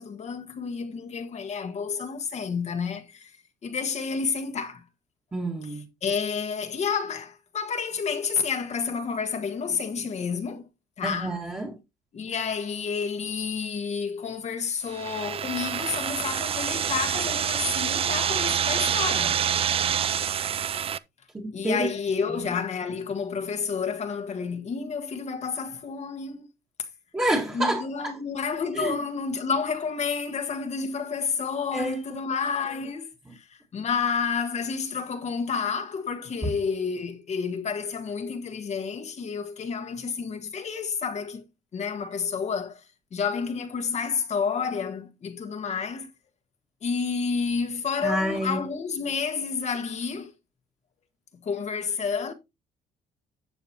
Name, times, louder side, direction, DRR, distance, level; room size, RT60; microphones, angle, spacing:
voice 1, 0.0-3.4 3.6-4.8 5.6-10.6 11.0-11.4 12.1-19.4 21.5-26.5 27.5-41.4 41.7-42.8 43.1-46.1 46.8-50.3 51.4-52.3, left 5 dB, 40° left, 1.4 m, -30 dB
voice 2, 5.3-5.8 11.0-11.8 21.3-21.9 27.1-28.1 28.7-29.0 31.7-32.2 48.0-48.6, right 1 dB, 15° right, 1.8 m, -28 dB
sound 1, 14.9-21.0, right 8 dB, 35° right, 0.4 m, -27 dB
12.0 x 7.2 x 2.9 m
cardioid pair, 110°, 17 cm